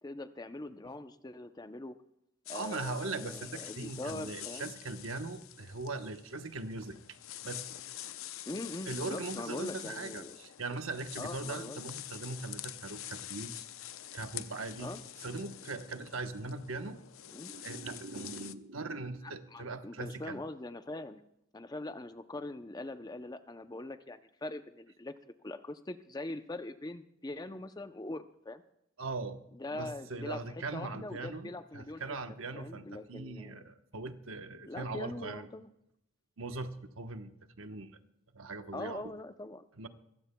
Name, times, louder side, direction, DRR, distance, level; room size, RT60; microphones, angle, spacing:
voice 1, 0.0-2.0 2.5-4.7 8.5-10.4 11.2-11.8 14.8-15.0 17.3-17.5 19.2-21.2 21.5-28.6 29.6-33.6 34.7-35.7 38.7-39.9, left 2 dB, 20° left, 10 dB, 0.5 m, -42 dB
sound 1, 2.5-18.5, left 13 dB, 75° left, 0.6 m, -46 dB
voice 2, 2.5-7.0 7.4-7.6 8.9-13.6 14.1-14.9 15.2-17.0 17.3-20.4 29.0-29.4 29.7-35.5 36.4-37.3 37.6-38.0 38.3-39.0 39.8-39.9, right 3 dB, 75° right, 8 dB, 1.0 m, -40 dB
22.0 x 15.5 x 2.2 m, 0.80 s
head